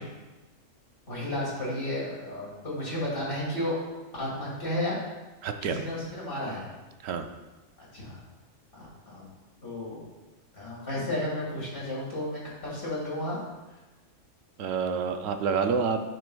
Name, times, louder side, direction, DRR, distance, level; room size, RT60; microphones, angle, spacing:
voice 1, 1.1-3.8 4.1-5.0 5.6-6.7 7.8-8.2 8.7-9.3 9.6-10.0 10.5-13.4, left 1 dB, 45° left, -5 dB, 1.9 m, -33 dB
voice 2, 5.4-5.8 7.0-7.3 14.6-16.0, right 5 dB, 85° right, 6 dB, 1.0 m, -28 dB
10.0 x 4.5 x 2.3 m, 1.2 s
omnidirectional pair, 1.3 m